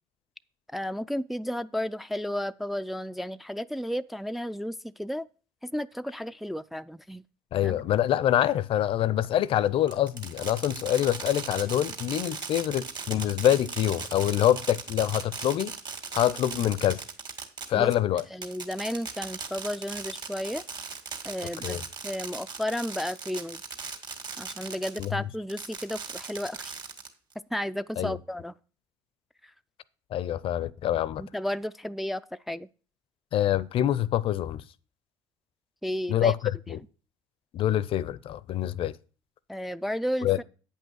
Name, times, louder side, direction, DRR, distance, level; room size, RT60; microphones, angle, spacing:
voice 1, 0.7-5.3 5.6-7.2 7.6-7.8 17.7-17.9 18.3-20.6 21.2-21.8 22.0-23.6 24.4-26.7 27.5-28.5 31.2-32.2 32.5-32.7 35.8-36.3 36.7-36.8 39.5-40.4, equal, ahead, 0.3 m, -33 dB
voice 2, 7.5-15.7 16.1-17.0 17.7-18.2 21.6-21.8 25.0-25.3 28.0-28.2 30.1-31.2 33.3-34.6 36.1-36.4 36.7-36.8 37.5-38.9 40.2-40.4, left 12 dB, 55° left, 0.5 m, -25 dB
Fireworks, 9.9-25.1 25.5-27.3, right 5 dB, 40° right, 2.1 m, -38 dB
8.7 x 5.5 x 6.3 m
supercardioid pair, 85°, 11 cm